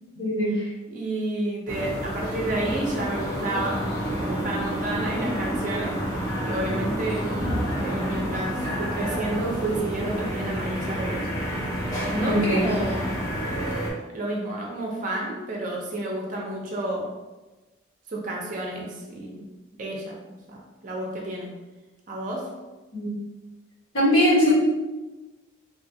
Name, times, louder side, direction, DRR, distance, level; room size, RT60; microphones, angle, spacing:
voice 1, 0.1-0.7 12.2-12.7 22.9-23.2 23.9-24.5, equal, 75° left, -6 dB, 1.2 m, -21 dB
voice 2, 0.9-3.9 4.2-6.0 6.4-7.3 7.8-11.3 12.1-13.2 14.1-17.1 18.1-19.5 19.8-20.2 20.5-21.5 22.1-22.5 24.5-24.6, right 1 dB, 40° right, -1 dB, 0.5 m, -30 dB
sound 1, 1.7-13.9, equal, 15° left, 0.4 m, -29 dB
3.3 x 2.4 x 2.6 m, 1.1 s
head